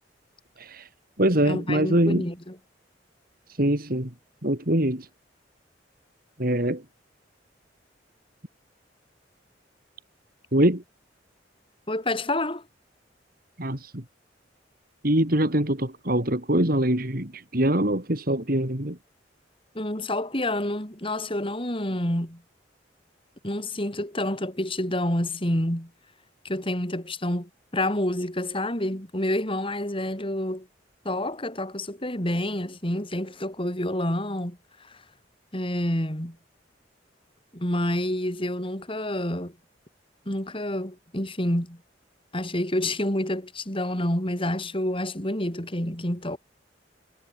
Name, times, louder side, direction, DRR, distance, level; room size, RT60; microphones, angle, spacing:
voice 1, 0.6-0.9 1.2-2.3 3.5-4.1 4.4-5.1 6.4-6.8 10.5-10.8 13.6-14.0 15.0-19.0, right 1 dB, 50° right, 3.6 m, -23 dB
voice 2, 1.5-2.6 11.9-12.6 19.7-22.4 23.4-25.9 26.4-30.7 31.0-35.0 35.5-36.4 37.5-39.5 40.3-41.8 42.3-46.4, left 1 dB, 30° left, 5.7 m, -28 dB
head